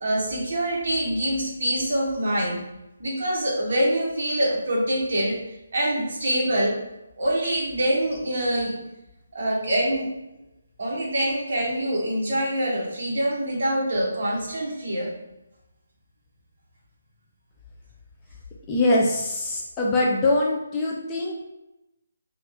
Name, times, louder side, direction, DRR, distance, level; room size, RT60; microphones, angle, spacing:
voice 1, 0.0-2.6 3.0-5.4 5.7-6.8 7.2-8.8 9.3-10.1 10.8-15.1, right 1 dB, 50° right, -3 dB, 1.2 m, -25 dB
voice 2, 18.7-21.4, left 2 dB, 10° left, -2 dB, 0.3 m, -23 dB
3.6 x 2.4 x 3.4 m, 0.94 s
hypercardioid pair, 175°, 0 cm